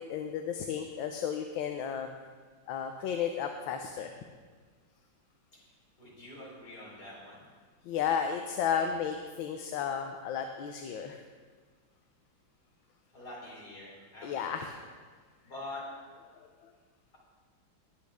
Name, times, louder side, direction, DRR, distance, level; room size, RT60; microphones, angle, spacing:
voice 1, 0.0-2.1 2.7-4.1 7.8-11.2 14.2-14.8 16.4-16.5, left 7 dB, 75° left, 5 dB, 1.4 m, -33 dB
voice 2, 6.0-7.4 10.6-10.7 13.1-14.8 15.4-15.8, left 2 dB, 50° left, -6 dB, 4.5 m, -46 dB
19.5 x 8.5 x 3.5 m, 1.5 s
omnidirectional pair, 2.2 m